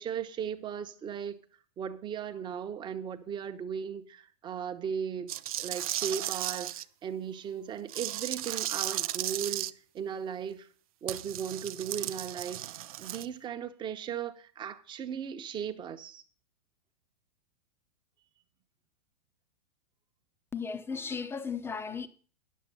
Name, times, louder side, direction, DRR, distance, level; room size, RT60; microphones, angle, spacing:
voice 1, 0.0-1.4 1.8-10.7 11.0-12.6 13.0-16.2, right 7 dB, 20° right, 1.0 m, -37 dB
sound 1, 5.3-6.8 7.9-9.7 11.1-13.3, right 13 dB, 60° right, 0.5 m, -35 dB
voice 2, 20.5-22.1, left 5 dB, 10° left, 0.7 m, -35 dB
10.5 x 6.8 x 6.7 m
figure-of-eight pair, 105°, 21 cm